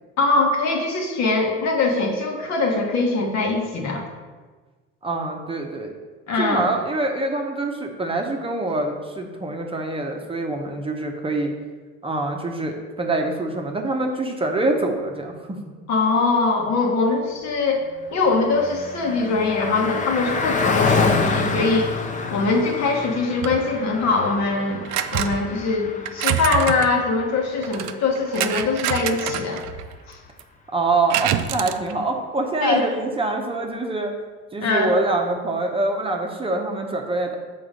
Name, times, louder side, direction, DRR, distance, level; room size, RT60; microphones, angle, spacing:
voice 1, 0.2-4.0 6.3-6.6 15.9-17.8 18.1-21.9 22.3-24.9 25.1-29.6 30.1-30.2 32.6-32.8 34.6-34.9, left 3 dB, 65° left, 1 dB, 1.4 m, -22 dB
voice 2, 5.0-5.9 6.4-11.5 12.0-15.6 30.7-34.1 34.5-37.3, right 2 dB, 20° right, 2 dB, 0.7 m, -25 dB
Car passing by, 17.8-29.6, left 4 dB, 25° left, 0.6 m, -28 dB
sound 1, 23.4-23.7 24.8-25.5 26.1-26.9 27.6-30.0 30.4-30.5 31.1-31.9, right 11 dB, 65° right, 0.5 m, -26 dB
6.0 x 3.9 x 5.1 m, 1.4 s
supercardioid pair, 100°, 29 cm